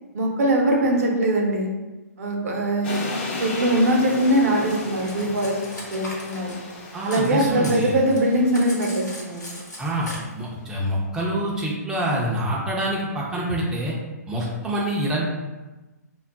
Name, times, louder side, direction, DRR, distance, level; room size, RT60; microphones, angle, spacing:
voice 1, 0.1-1.7 2.2-3.0 3.4-5.6 5.9-6.6 7.0-9.6, right 1 dB, 60° right, 0 dB, 0.6 m, -22 dB
sound 1, 2.8-9.9, left 2 dB, 40° left, 0.6 m, -35 dB
Cutlery silverware, 4.0-7.3 7.6-10.2, left 1 dB, 85° left, 0.9 m, -39 dB
voice 2, 6.9-7.9 9.8-10.1 10.4-13.9 14.3-15.3, right 1 dB, 5° right, -5 dB, 0.4 m, -26 dB
2.2 x 2.0 x 3.7 m, 1.1 s
hypercardioid pair, 130°, 9 cm